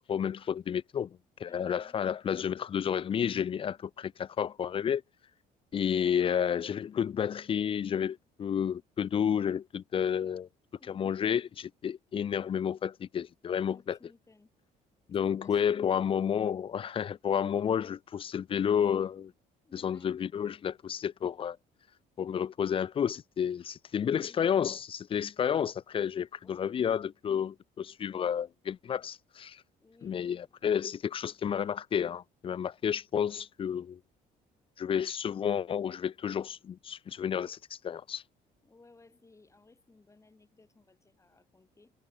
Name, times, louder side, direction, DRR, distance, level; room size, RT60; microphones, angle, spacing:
voice 1, 0.1-5.0 5.7-10.5 10.9-14.0 15.1-19.3 19.7-21.6 22.2-29.6 30.0-34.0 34.8-38.2, left 8 dB, 35° left, 0.4 m, -31 dB
voice 2, 1.5-1.9 6.0-6.2 10.7-11.3 13.7-14.5 15.2-16.1 19.6-20.1 24.0-24.4 26.4-26.8 29.8-30.5 38.6-41.9, left 3 dB, 15° left, 3.0 m, -59 dB
cardioid pair, 110°, 17 cm